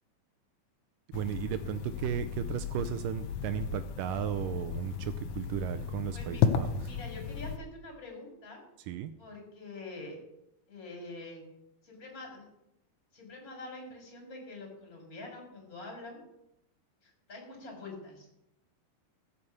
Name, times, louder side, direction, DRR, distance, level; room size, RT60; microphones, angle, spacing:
sound 1, 1.1-7.6, left 7 dB, 70° left, 1.9 m, -34 dB
voice 1, 1.1-6.9 8.9-9.1, right 10 dB, 80° right, 10 dB, 2.0 m, -35 dB
voice 2, 6.1-6.4 6.8-8.6 9.2-10.2 10.7-11.4 11.8-12.4 13.1-16.2 17.0-18.3, left 2 dB, 25° left, 1 dB, 4.0 m, -45 dB
15.0 x 6.6 x 7.1 m, 0.84 s
omnidirectional pair, 4.2 m